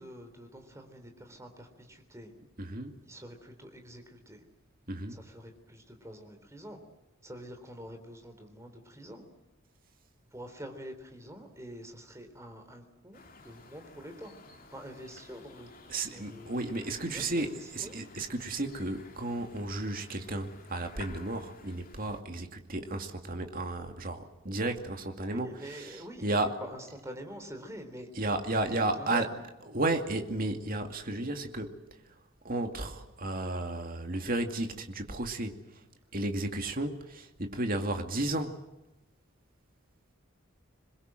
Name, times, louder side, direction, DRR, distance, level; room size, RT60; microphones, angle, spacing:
voice 1, 0.0-2.3 3.1-4.4 5.1-6.8 7.2-9.2 10.3-14.3 14.7-15.8 16.1-17.9 25.3-28.1 28.6-29.3, equal, 15° right, 3.7 m, -46 dB
voice 2, 2.6-2.9 4.9-5.2 15.9-26.6 28.1-29.3 29.7-31.8 32.4-35.6 36.1-38.6, right 2 dB, 40° right, 2.4 m, -33 dB
sound 1, 13.1-22.2, left 3 dB, 40° left, 3.2 m, -53 dB
27.5 x 21.5 x 7.7 m
head